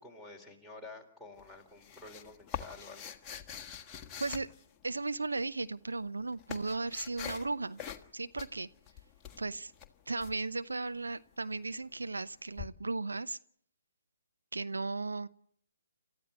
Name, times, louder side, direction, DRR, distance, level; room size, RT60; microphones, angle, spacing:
voice 1, 0.0-3.1, left 3 dB, ahead, 4 dB, 4.1 m, -50 dB
sound 1, 1.4-5.2 5.9-7.5 7.8-8.1 8.4-10.3 12.6-12.7, left 8 dB, 15° left, 1.6 m, -44 dB
voice 2, 4.8-7.8 8.1-8.7 9.4-9.7 10.1-13.4 14.5-15.3, right 3 dB, 80° right, 12 dB, 0.8 m, -36 dB
29.0 x 14.0 x 8.2 m, 0.64 s
figure-of-eight pair, 135°, 0 cm